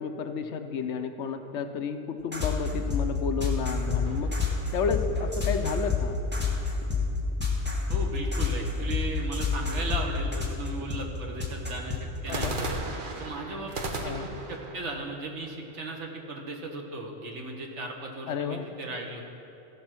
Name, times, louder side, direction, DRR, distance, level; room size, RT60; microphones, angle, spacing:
voice 1, 0.0-4.3 4.7-6.2 12.3-12.6 14.0-14.3 18.3-18.7, left 5 dB, 70° left, 7 dB, 0.9 m, -31 dB
sound 1, 2.3-12.7, left 5 dB, 10° right, 1.4 m, -28 dB
sound 2, 4.0-5.5 12.3-16.2, right 2 dB, 45° right, 1.0 m, -37 dB
voice 2, 7.9-12.8 13.2-19.2, right 2 dB, 70° right, 1 dB, 1.5 m, -36 dB
15.5 x 5.2 x 6.0 m, 2.8 s
omnidirectional pair, 1.3 m